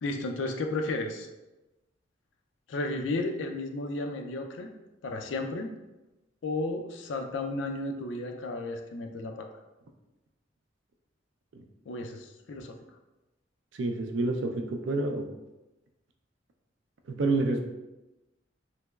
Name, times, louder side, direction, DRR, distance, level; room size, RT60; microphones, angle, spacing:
voice 1, 0.0-1.3 2.7-4.7 5.0-5.7 6.4-9.5 11.9-12.8, left 2 dB, 80° left, 4 dB, 0.4 m, -33 dB
voice 2, 13.7-15.3 17.1-17.6, right 2 dB, 75° right, 4 dB, 0.4 m, -28 dB
3.3 x 2.9 x 2.2 m, 1.0 s
head